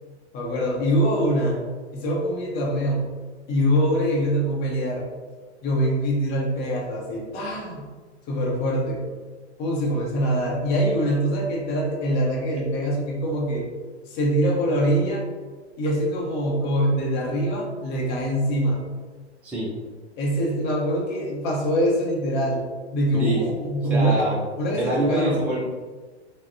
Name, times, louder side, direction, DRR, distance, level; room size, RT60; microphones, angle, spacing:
voice 1, 0.3-1.6 1.9-3.1 3.5-5.1 5.6-7.8 8.3-9.0 9.6-13.7 14.1-15.3 15.8-18.8 20.2-22.7 22.9-24.3 24.6-25.4, equal, 30° left, -2 dB, 0.8 m, -24 dB
voice 2, 23.1-23.4 23.9-24.4 24.8-25.6, right 1 dB, 5° right, -5 dB, 0.4 m, -25 dB
3.6 x 2.2 x 3.4 m, 1.4 s
figure-of-eight pair, 95°, 34 cm